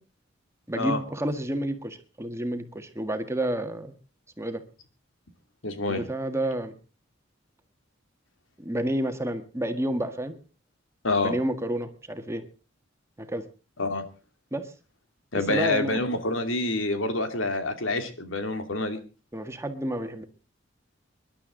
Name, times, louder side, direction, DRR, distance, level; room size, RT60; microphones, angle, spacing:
voice 1, 0.7-3.9 4.4-4.6 5.9-6.7 8.6-10.4 11.2-12.4 13.2-13.4 14.5-14.7 15.5-16.0 19.3-20.2, right 1 dB, 15° right, 7 dB, 1.7 m, -30 dB
voice 2, 5.6-6.0 11.0-11.3 13.8-14.0 15.3-19.0, left 2 dB, 85° left, 7 dB, 2.7 m, -27 dB
24.5 x 11.5 x 3.9 m, 0.35 s
head